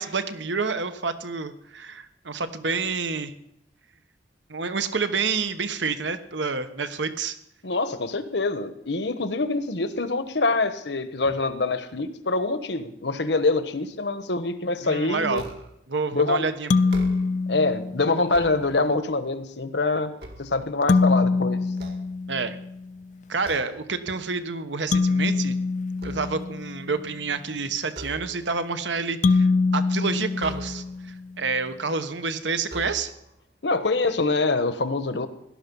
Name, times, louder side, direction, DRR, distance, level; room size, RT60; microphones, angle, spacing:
voice 1, 0.0-3.3 4.5-7.4 14.8-15.4 15.9-16.7 22.3-22.6 23.3-25.6 26.0-29.5 29.7-30.8 31.4-33.1, right 4 dB, 80° right, 10 dB, 1.3 m, -28 dB
voice 2, 7.6-15.4 16.1-16.5 17.5-20.1 20.4-21.6 33.6-35.3, left 3 dB, 70° left, 11 dB, 1.2 m, -25 dB
sound 1, 15.3-15.9 16.8-17.5 18.1-19.2 19.7-21.2 21.7-22.7 23.4-23.9 24.3-24.6 24.9-26.7 27.9-28.7 30.4-31.1 31.9-32.0 32.6-33.4, right 1 dB, 60° right, 2.0 m, -42 dB
sound 2, 16.7-18.4 20.9-22.9 24.9-27.0 29.2-31.3, left 3 dB, 40° left, 0.5 m, -24 dB
17.5 x 12.0 x 5.5 m, 0.79 s
head